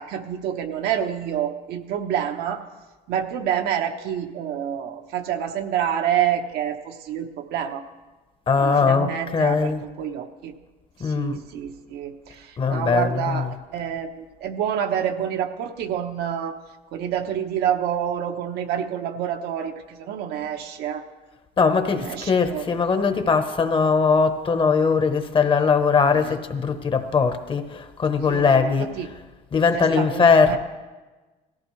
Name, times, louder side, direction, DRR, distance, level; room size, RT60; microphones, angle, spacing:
voice 1, 0.0-2.7 3.1-7.8 8.6-10.5 11.0-16.6 16.9-21.0 21.9-22.8 26.1-26.3 28.3-29.1 29.7-30.6, right 9 dB, 80° right, 1.0 m, -28 dB
voice 2, 8.5-9.8 11.0-11.4 12.6-13.5 21.6-28.9 29.5-30.6, left 5 dB, 30° left, 0.9 m, -20 dB
18.0 x 14.5 x 3.2 m
cardioid pair, 120°, 16 cm